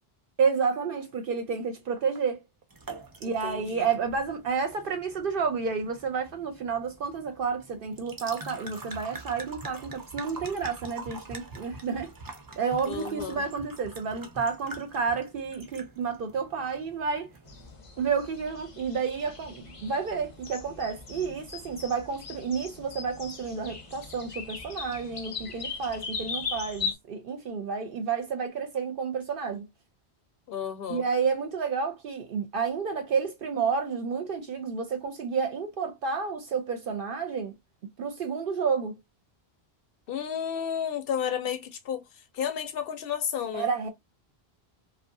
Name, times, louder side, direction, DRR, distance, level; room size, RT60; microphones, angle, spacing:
voice 1, 0.4-2.4 3.2-12.1 12.6-17.3 18.0-29.6 30.9-37.5 38.0-39.0 43.5-43.9, right 5 dB, 65° right, 0.7 m, -30 dB
sound 1, 2.7-17.7, right 2 dB, 30° right, 0.4 m, -45 dB
voice 2, 3.2-3.9 12.8-13.4 30.5-31.1 40.1-43.7, left 8 dB, 65° left, 0.8 m, -32 dB
sound 2, 17.4-27.0, left 5 dB, 40° left, 0.6 m, -39 dB
2.6 x 2.3 x 2.4 m
omnidirectional pair, 1.1 m